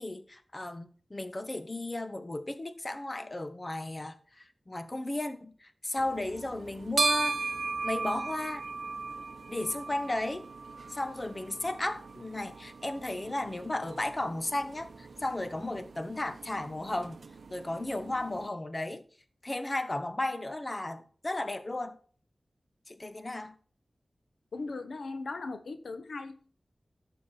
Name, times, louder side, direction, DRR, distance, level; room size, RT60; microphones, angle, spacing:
voice 1, 0.0-7.4 7.8-8.6 9.5-10.4 10.9-17.2 17.5-19.0 19.4-22.0 22.9-23.5, left 2 dB, 35° left, 1.3 m, -34 dB
sound 1, 6.0-18.5, right 4 dB, 80° right, 0.7 m, -37 dB
voice 2, 24.5-26.5, left 3 dB, 90° left, 1.2 m, -38 dB
12.0 x 6.9 x 4.4 m
wide cardioid pair, 55°, 0 cm